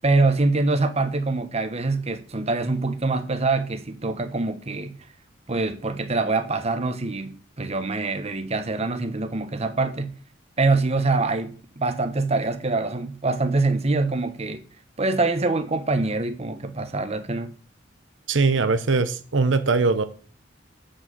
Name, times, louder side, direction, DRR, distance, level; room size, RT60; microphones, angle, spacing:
voice 1, 0.0-4.9 5.5-10.1 10.6-14.7 15.0-17.5, right 3 dB, 35° right, 1.0 m, -24 dB
voice 2, 18.3-20.0, right 4 dB, 75° right, 0.8 m, -21 dB
7.3 x 6.4 x 7.5 m
head